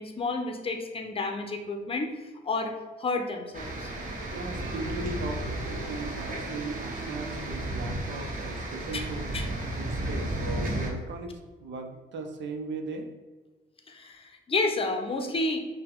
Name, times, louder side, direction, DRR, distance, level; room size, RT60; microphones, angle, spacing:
voice 1, 0.0-3.9 8.9-9.1 9.3-9.5 13.9-15.6, left 3 dB, 30° left, 4 dB, 0.7 m, -31 dB
sound 1, 3.5-10.9, right 1 dB, 45° right, 1.1 m, -33 dB
voice 2, 4.3-9.3 9.8-13.1, right 3 dB, 65° right, 4 dB, 0.7 m, -38 dB
5.5 x 2.2 x 3.6 m, 1.3 s
cardioid pair, 90°, 20 cm